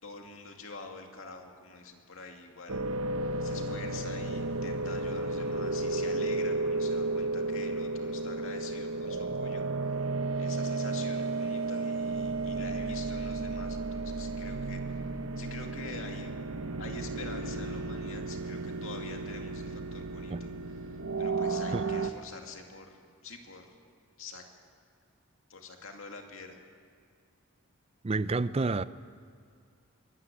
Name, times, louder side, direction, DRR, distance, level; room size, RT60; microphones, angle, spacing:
voice 1, 0.0-2.8 3.4-10.0 10.4-16.3 16.8-23.8 24.2-24.4 25.5-26.6, left 3 dB, 65° left, 2.4 m, -46 dB
sound 1, 2.7-22.1, right 3 dB, 70° right, 1.0 m, -33 dB
voice 2, 28.0-28.8, right 3 dB, 30° right, 0.5 m, -29 dB
23.0 x 14.0 x 9.1 m
head